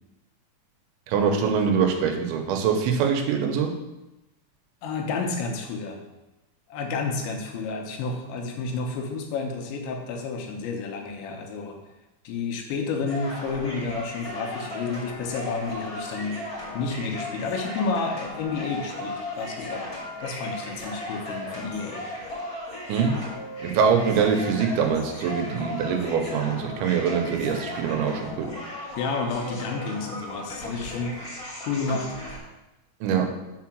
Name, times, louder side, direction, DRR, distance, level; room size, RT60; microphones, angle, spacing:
voice 1, 1.1-3.8 22.9-23.2 23.6-28.5 33.0-33.4, right 6 dB, 85° right, 4 dB, 3.2 m, -24 dB
voice 2, 4.8-6.0 6.7-11.8 12.2-16.4 16.7-19.9 20.2-22.1 29.0-31.1 31.6-32.1, left 4 dB, 80° left, 2 dB, 3.2 m, -30 dB
sound 1, 13.1-32.4, left 1 dB, 30° left, 2.0 m, -36 dB
6.6 x 4.7 x 6.1 m, 1.0 s
omnidirectional pair, 5.2 m